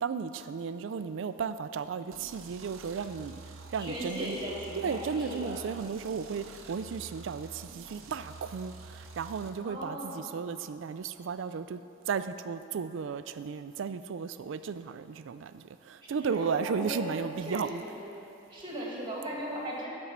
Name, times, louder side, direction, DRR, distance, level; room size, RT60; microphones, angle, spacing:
voice 1, 0.0-3.4 3.7-4.4 4.8-11.8 12.1-17.8, right 6 dB, 65° right, 12 dB, 0.4 m, -34 dB
sound 1, 2.1-9.5, right 4 dB, 90° right, 0.7 m, -48 dB
voice 2, 3.8-5.7 9.6-10.3 16.2-18.2 18.5-19.9, equal, 25° right, -4 dB, 2.0 m, -37 dB
11.0 x 4.4 x 7.2 m, 2.7 s
head